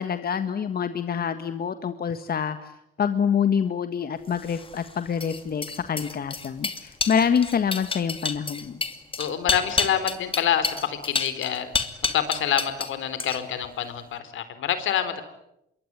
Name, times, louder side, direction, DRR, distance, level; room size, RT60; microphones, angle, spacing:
voice 1, 0.0-2.7 3.0-8.8, left 7 dB, 50° left, 9 dB, 1.6 m, -26 dB
sound 1, 4.4-12.9 13.2-13.7, left 4 dB, 25° left, 2.7 m, -29 dB
voice 2, 9.2-11.7 12.1-15.2, left 9 dB, 75° left, 11 dB, 3.9 m, -26 dB
26.0 x 23.0 x 9.6 m, 0.84 s
cardioid pair, 90°, 20 cm